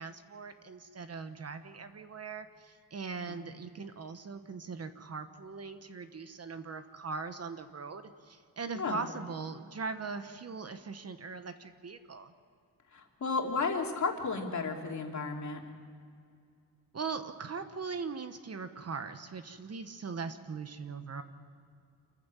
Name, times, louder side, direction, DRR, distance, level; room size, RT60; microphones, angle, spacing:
voice 1, 0.0-12.3 16.9-21.2, right 5 dB, 40° right, 9 dB, 1.2 m, -40 dB
voice 2, 8.7-9.1 12.9-15.6, left 4 dB, 50° left, 1 dB, 2.9 m, -33 dB
28.0 x 15.0 x 7.4 m, 2.3 s
wide cardioid pair, 120°, 37 cm